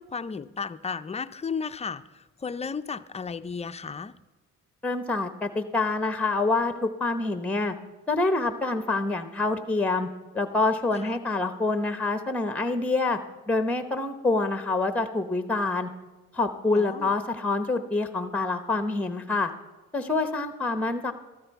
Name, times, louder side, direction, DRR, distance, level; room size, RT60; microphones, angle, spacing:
voice 1, 0.0-4.2 10.9-11.2 16.7-17.1, left 5 dB, 20° left, 0.5 m, -34 dB
voice 2, 4.8-7.7 8.1-10.1 10.3-13.2 13.5-15.9 16.3-19.5 19.9-21.1, left 3 dB, 5° left, 0.9 m, -26 dB
14.0 x 13.0 x 4.7 m
cardioid pair, 90°, 30 cm